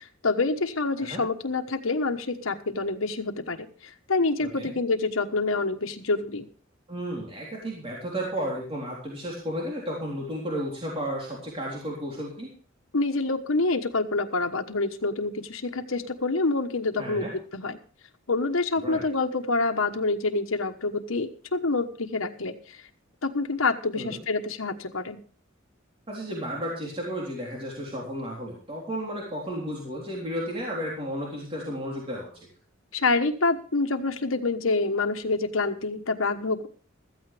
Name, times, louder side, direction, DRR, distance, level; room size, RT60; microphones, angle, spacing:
voice 1, 0.0-6.5 12.9-17.3 17.5-17.8 18.3-22.5 23.2-25.2 32.9-36.7, left 3 dB, 90° left, 6 dB, 1.2 m, -27 dB
voice 2, 4.4-4.7 6.9-12.5 17.0-17.3 18.8-19.0 23.9-24.2 26.1-32.3, equal, 30° right, -3 dB, 3.6 m, -33 dB
15.0 x 14.0 x 3.4 m, 0.42 s
head